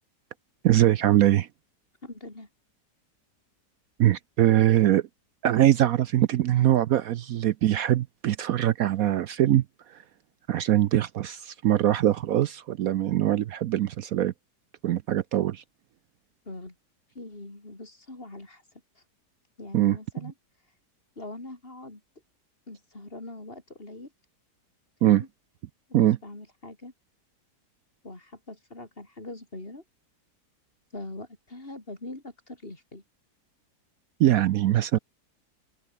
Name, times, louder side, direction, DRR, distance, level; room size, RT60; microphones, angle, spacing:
voice 1, 0.6-1.5 4.0-5.0 5.4-9.6 10.5-14.3 14.8-15.6 19.7-20.0 20.2-20.3 25.0-25.2 25.9-26.2 34.2-35.0, right 13 dB, 70° right, 1.0 m, -22 dB
voice 2, 2.0-2.5 16.5-16.7 17.1-18.6 19.0-19.1 19.6-20.3 21.2-22.0 22.7-24.1 25.0-25.3 26.0-26.9 28.0-29.8 30.9-33.0, left 2 dB, 35° left, 4.4 m, -42 dB
open air
omnidirectional pair, 1.8 m